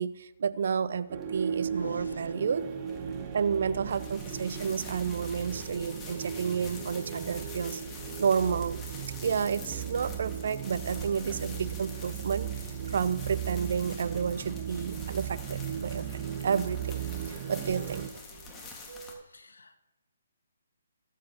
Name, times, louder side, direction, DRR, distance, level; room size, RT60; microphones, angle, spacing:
voice 1, 0.0-2.6 3.3-8.8 9.1-12.5 12.9-16.0 16.4-18.1 18.9-19.2, right 6 dB, 60° right, 16 dB, 0.6 m, -31 dB
Thunder, 0.9-17.9, left 5 dB, 55° left, 1.2 m, -53 dB
sound 1, 1.1-18.1, right 9 dB, 30° right, 1.0 m, -37 dB
sound 2, 1.2-19.1, left 3 dB, 15° left, 1.8 m, -47 dB
voice 2, 1.7-2.3 3.3-3.4 19.2-19.8, left 3 dB, 85° left, 8 dB, 1.4 m, -57 dB
20.5 x 7.5 x 3.0 m, 1.0 s
hypercardioid pair, 150°, 0 cm